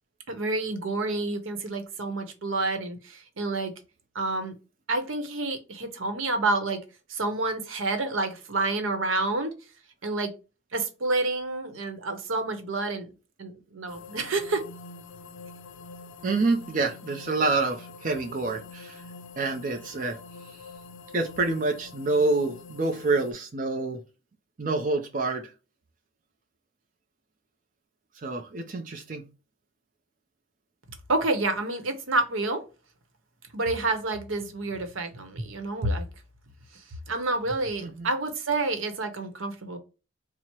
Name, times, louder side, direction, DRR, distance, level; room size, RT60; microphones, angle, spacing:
voice 1, 0.3-3.7 4.1-4.5 4.9-6.8 7.1-9.6 10.0-10.3 10.7-13.1 13.4-14.6 31.1-32.6 33.5-36.1 37.1-39.8, right 2 dB, 80° right, 0.8 m, -28 dB
sound 1, 13.9-23.3, left 4 dB, 70° left, 0.4 m, -46 dB
voice 2, 16.2-19.0 19.4-20.6 21.1-24.0 24.6-25.5 28.1-29.3 37.8-38.1, right 3 dB, 40° right, 0.5 m, -27 dB
4.3 x 2.0 x 4.5 m
head